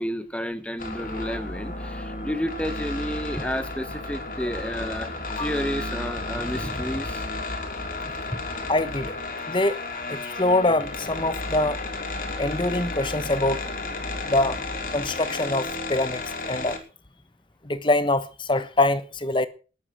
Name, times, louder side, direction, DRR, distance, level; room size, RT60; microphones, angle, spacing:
voice 1, 0.0-7.3 8.3-8.4, equal, 5° left, 1.4 m, -31 dB
sound 1, 0.8-16.8, left 2 dB, 50° left, 3.2 m, -33 dB
voice 2, 8.7-9.1 9.5-9.8 10.1-11.8 12.4-13.7 14.3-14.6 14.9-16.8 17.6-19.5, left 2 dB, 25° left, 1.2 m, -24 dB
19.5 x 8.5 x 6.3 m
head